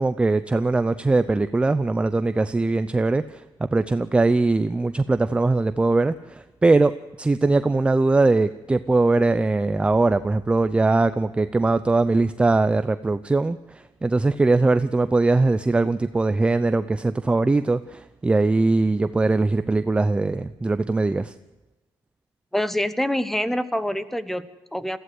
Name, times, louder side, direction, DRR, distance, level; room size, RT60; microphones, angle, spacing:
voice 1, 0.0-21.3, right 3 dB, 10° right, 12 dB, 0.6 m, -21 dB
voice 2, 22.5-25.0, left 1 dB, 5° left, 14 dB, 1.1 m, -26 dB
21.5 x 15.0 x 8.0 m, 1.1 s
cardioid pair, 125°, 9 cm